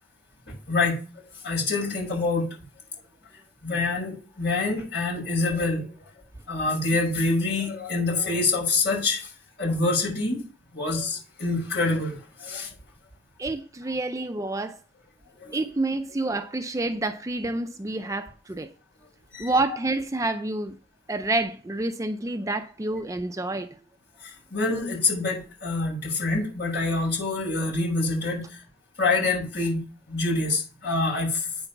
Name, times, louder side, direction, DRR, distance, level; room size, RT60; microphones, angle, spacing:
voice 1, 0.5-2.5 3.6-6.1 6.5-9.3 9.6-10.4 10.7-12.7 15.4-15.6 19.3-19.5 24.2-28.6 29.0-29.8 30.1-31.5, left 3 dB, 55° left, 5.9 m, -26 dB
voice 2, 13.4-14.8 15.5-18.7 19.4-20.8 21.1-23.8, right 2 dB, 15° right, 0.4 m, -28 dB
9.1 x 5.3 x 5.8 m
head